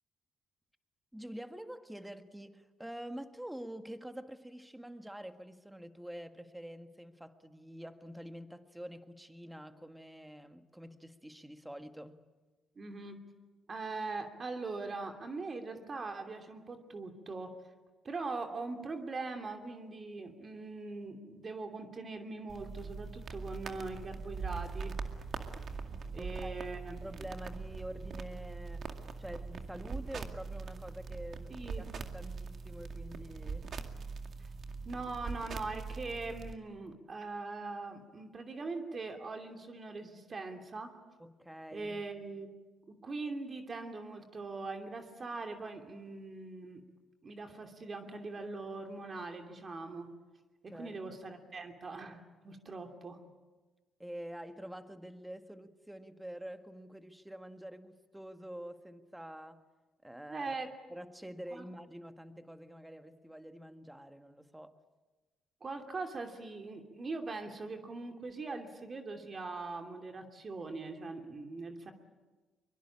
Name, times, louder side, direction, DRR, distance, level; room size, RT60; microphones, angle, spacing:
voice 1, 1.1-12.2 26.2-26.5 27.0-33.8 41.2-42.0 50.7-51.2 54.0-59.7 60.0-60.6 60.9-64.8, equal, 5° right, 1.7 m, -47 dB
voice 2, 12.8-13.2 13.7-17.5 18.0-25.0 26.1-27.3 31.5-31.9 34.9-40.9 41.7-42.5 42.9-46.8 47.2-50.1 50.6-53.2 60.3-60.7 61.5-61.6 65.6-71.9, right 3 dB, 40° right, 2.8 m, -41 dB
sound 1, 22.5-36.5, right 4 dB, 55° right, 2.2 m, -42 dB
23.5 x 23.0 x 8.7 m
cardioid pair, 90°, 0 cm